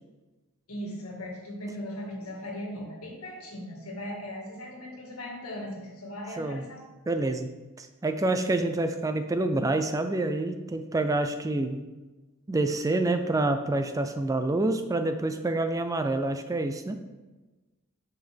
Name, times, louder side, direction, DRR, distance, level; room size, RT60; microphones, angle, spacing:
voice 1, 0.7-6.8, equal, 80° left, -1 dB, 1.8 m, -38 dB
voice 2, 7.1-7.5 7.8-11.8 12.5-17.0, right 2 dB, 15° right, 8 dB, 0.3 m, -27 dB
7.9 x 5.8 x 3.5 m, 1.2 s
head